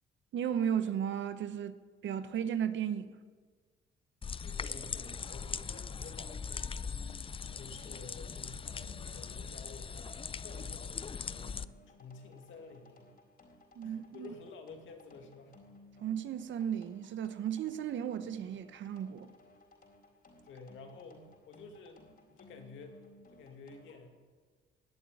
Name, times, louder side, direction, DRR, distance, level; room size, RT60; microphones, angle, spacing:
voice 1, 0.3-3.1 13.7-14.3 16.0-19.3, right 9 dB, 70° right, 1.0 m, -35 dB
sound 1, 4.2-11.7, left 6 dB, 25° left, 0.5 m, -40 dB
voice 2, 4.3-7.0 7.5-10.1 10.4-13.1 13.8-15.6 20.4-23.0 23.3-24.2, left 4 dB, 75° left, 2.4 m, -51 dB
sound 2, 6.8-24.0, left 2 dB, 50° left, 4.0 m, -60 dB
19.5 x 7.2 x 9.9 m
cardioid pair, 90°, 20 cm